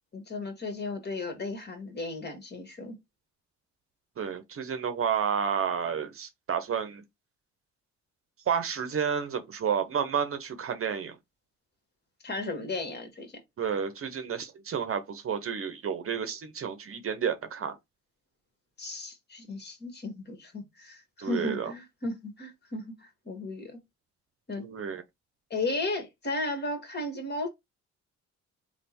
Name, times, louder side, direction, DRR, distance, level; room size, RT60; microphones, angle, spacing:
voice 1, 0.1-3.0 12.2-13.3 18.8-23.8 24.5-24.7 25.5-27.5, left 2 dB, 35° left, 1.6 m, -35 dB
voice 2, 4.2-7.0 8.5-11.1 13.6-17.8 21.2-21.7 24.6-25.0, right 7 dB, 45° right, 0.8 m, -31 dB
3.4 x 2.3 x 4.3 m
cardioid pair, 90°, 30 cm